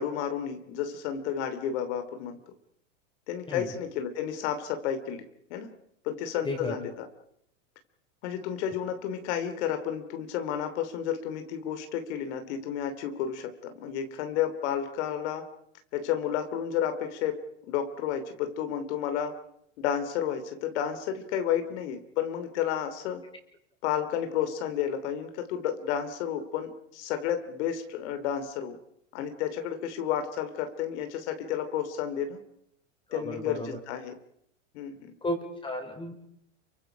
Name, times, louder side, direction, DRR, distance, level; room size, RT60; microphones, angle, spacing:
voice 1, 0.0-2.4 3.3-5.2 5.5-5.7 6.0-7.1 8.2-15.4 15.9-17.4 17.7-19.3 19.8-23.2 23.8-28.8 29.1-32.4 33.1-34.1 34.7-35.1, left 9 dB, 60° left, 8 dB, 3.0 m, -31 dB
voice 2, 33.1-33.8 35.2-36.1, left 1 dB, 15° left, 3 dB, 4.9 m, -33 dB
29.0 x 24.0 x 5.1 m, 0.75 s
hypercardioid pair, 120°, 38 cm